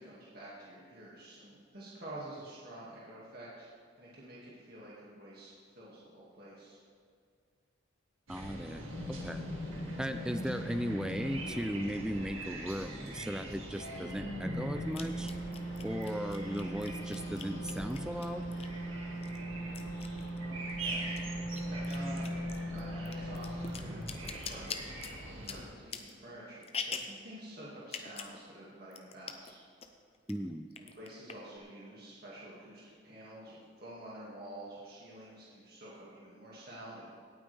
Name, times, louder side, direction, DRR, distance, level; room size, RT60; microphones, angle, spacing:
voice 1, 0.0-3.7 4.0-6.8 20.4-25.2 25.4-29.6 30.8-37.1, right 1 dB, 50° right, -7 dB, 2.2 m, -49 dB
voice 2, 8.3-8.9 9.2-9.5 10.0-15.3 15.8-18.5 30.3-30.7, equal, 5° right, 9 dB, 0.3 m, -37 dB
sound 1, 8.3-25.7, right 1 dB, 85° right, 2.3 m, -43 dB
sound 2, 8.9-11.9 13.4-23.7, equal, 75° left, 1.7 m, -40 dB
sound 3, 13.2-13.3 14.9-18.9 19.2-20.8 21.0-27.2 27.8-28.4 28.6-28.7 28.9-29.5 29.8-30.3 30.7-31.6, left 6 dB, 30° left, 0.7 m, -43 dB
17.5 x 8.9 x 3.5 m, 2.1 s
head